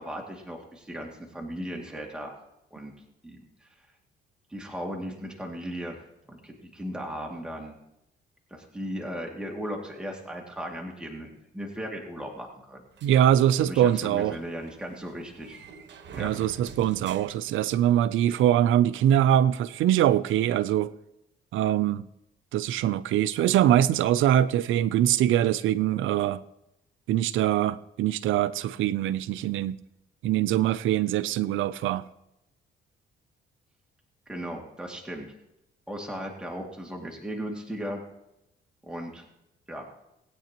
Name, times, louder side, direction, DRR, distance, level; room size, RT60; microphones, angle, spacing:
voice 1, 0.0-2.4 2.7-2.9 3.2-3.7 4.5-6.0 6.3-7.8 8.5-12.8 13.6-15.6 16.1-16.3 34.3-35.3 35.9-38.0 38.8-39.3 39.7-39.8, equal, 5° right, 2.3 m, -37 dB
sound 1, 13.0-18.2, right 6 dB, 65° right, 1.2 m, -47 dB
voice 2, 13.0-14.4 16.2-20.9 21.5-22.0 22.5-26.4 27.1-29.8 30.2-32.0, right 11 dB, 80° right, 0.5 m, -23 dB
20.0 x 9.1 x 3.0 m
cardioid pair, 90°, 20 cm